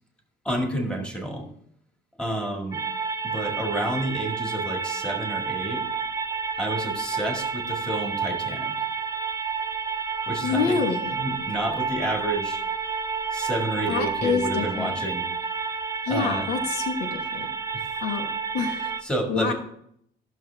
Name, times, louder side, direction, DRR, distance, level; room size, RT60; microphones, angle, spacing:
voice 1, 0.4-1.5 2.2-2.8 3.2-5.8 6.6-8.7 10.3-10.8 11.1-12.6 13.3-15.2 16.1-16.5 17.7-17.9 19.0-19.5, right 1 dB, 5° left, 2 dB, 1.9 m, -30 dB
sound 1, 2.7-19.0, right 5 dB, 20° right, 0.7 m, -30 dB
voice 2, 10.4-11.1 13.9-14.9 16.1-17.5 18.0-18.3 18.5-18.9 19.3-19.5, left 5 dB, 75° left, 6 dB, 1.3 m, -27 dB
14.0 x 6.4 x 3.4 m, 0.69 s
cardioid pair, 110°, 17 cm